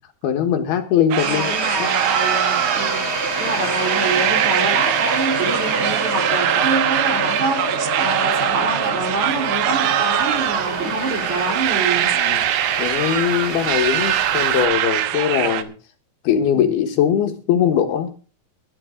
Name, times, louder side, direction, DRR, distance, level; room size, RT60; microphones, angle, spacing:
voice 1, 0.2-1.9 12.1-12.4 12.8-15.7 16.2-18.1, left 9 dB, 75° left, 6 dB, 3.4 m, -21 dB
sound 1, 1.1-15.6, right 12 dB, 80° right, 3.1 m, -22 dB
sound 2, 1.2-14.7, right 2 dB, 20° right, 2.8 m, -27 dB
voice 2, 1.2-3.0 3.4-12.1 13.5-13.6 16.5-16.7, right 2 dB, 50° right, 1 dB, 5.3 m, -26 dB
21.0 x 10.5 x 3.7 m, 0.37 s
omnidirectional pair, 4.6 m